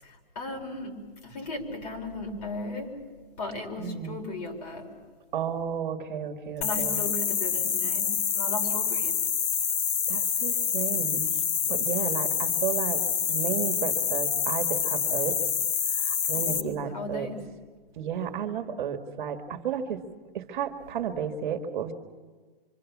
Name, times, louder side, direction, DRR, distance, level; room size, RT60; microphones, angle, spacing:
voice 1, 0.0-2.9 3.4-4.9 6.6-9.2 16.3-17.5, left 2 dB, 40° left, 1 dB, 4.9 m, -37 dB
voice 2, 3.8-4.2 5.3-7.0 10.1-11.3 11.7-13.0 13.3-15.4 15.9-17.3 18.0-20.0 20.3-21.9, right 8 dB, 55° right, 7 dB, 1.8 m, -33 dB
sound 1, 6.6-16.6, left 8 dB, 25° left, 1.0 m, -27 dB
25.5 x 25.0 x 7.3 m, 1.5 s
hypercardioid pair, 160°, 29 cm